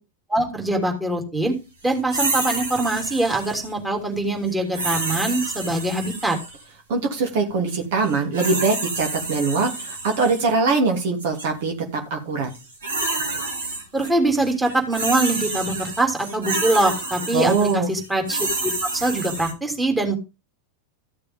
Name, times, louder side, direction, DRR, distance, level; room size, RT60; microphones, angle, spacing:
voice 1, 0.3-1.5 1.8-6.4 13.9-20.2, right 2 dB, 10° right, 2 dB, 3.2 m, -23 dB
sound 1, 2.1-3.7 4.7-6.6 8.0-10.5 11.2-11.5 12.5-14.1 14.4-19.5, right 3 dB, 70° right, 4.4 m, -29 dB
voice 2, 6.9-12.5 17.3-17.9, right 4 dB, 50° right, 2 dB, 2.8 m, -22 dB
14.5 x 6.7 x 3.6 m, 0.28 s
figure-of-eight pair, 90°, 0 cm